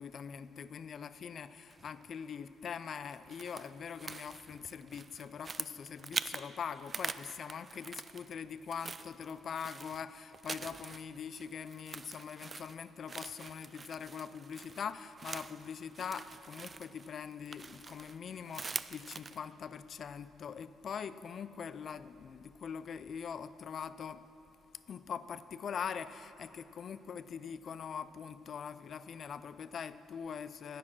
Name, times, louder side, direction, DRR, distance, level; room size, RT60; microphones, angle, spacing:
voice 1, 0.0-24.3 24.9-30.8, left 7 dB, 55° left, 14 dB, 0.4 m, -43 dB
sound 1, 1.7-2.1 2.8-6.5 6.8-8.4 8.6-19.4, right 4 dB, 35° right, 0.3 m, -44 dB
10.0 x 9.9 x 6.1 m, 2.8 s
cardioid pair, 90°, 0 cm